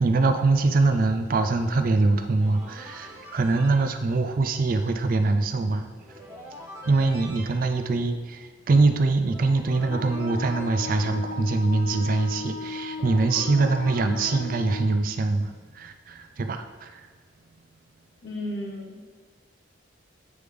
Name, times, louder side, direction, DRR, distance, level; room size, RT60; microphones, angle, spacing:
voice 1, 0.0-6.0 6.3-17.1, right 3 dB, 45° right, 7 dB, 0.3 m, -24 dB
sound 1, 2.4-3.8 6.0-7.5 9.2-10.7 13.0-14.4, equal, 15° right, 1.6 m, -44 dB
Wind instrument woodwind instrument, 9.9-15.0, left 3 dB, 45° left, 0.3 m, -36 dB
voice 2, 18.2-19.1, left 1 dB, 70° left, -2 dB, 0.8 m, -34 dB
9.3 x 3.4 x 3.3 m, 1.5 s
head